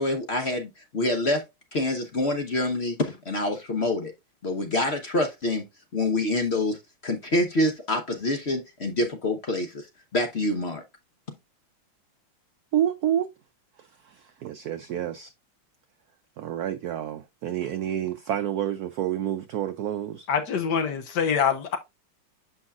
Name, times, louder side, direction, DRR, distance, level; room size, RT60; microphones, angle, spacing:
voice 1, 0.0-1.4 1.7-4.1 4.4-5.6 5.9-9.9 10.1-10.8, left 2 dB, 45° left, 0.9 m, -26 dB
voice 2, 12.7-13.3 14.4-15.3 16.4-20.3, right 11 dB, 85° right, 0.8 m, -28 dB
voice 3, 20.3-21.8, left 7 dB, 60° left, 1.5 m, -25 dB
7.9 x 5.6 x 2.4 m
omnidirectional pair, 2.2 m